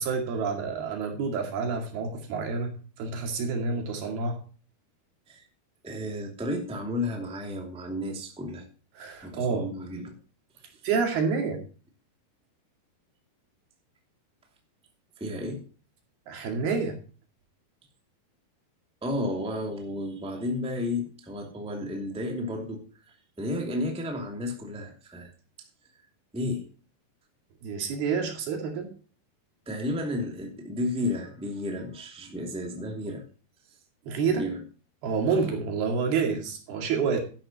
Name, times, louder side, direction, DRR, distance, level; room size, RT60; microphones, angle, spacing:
voice 1, 0.0-2.7 3.0-4.4 9.0-9.7 10.8-11.6 16.3-17.0 27.6-28.9 34.1-34.5 35.0-37.2, right 5 dB, 75° right, 3 dB, 4.2 m, -28 dB
voice 2, 5.8-8.7 9.2-10.2 15.2-15.6 19.0-25.3 26.3-26.7 29.7-33.2 34.3-34.6 35.3-35.5, left 1 dB, ahead, 1 dB, 1.8 m, -32 dB
12.0 x 11.0 x 2.9 m, 0.38 s
omnidirectional pair, 4.6 m